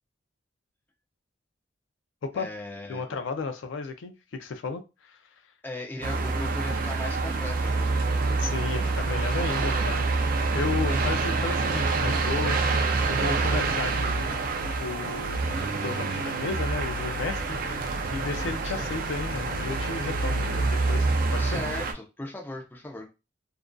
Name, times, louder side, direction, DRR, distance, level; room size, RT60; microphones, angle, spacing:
voice 1, 2.3-3.2 5.6-8.0 17.5-17.8 18.6-18.9 21.4-23.1, left 2 dB, 10° left, 0.5 m, -38 dB
voice 2, 2.9-5.2 8.4-10.1 10.5-15.4 15.7-17.6 18.1-21.6, left 4 dB, 80° left, 0.4 m, -34 dB
sound 1, 6.0-21.9, right 3 dB, 50° right, 0.4 m, -27 dB
2.5 x 2.3 x 2.2 m
head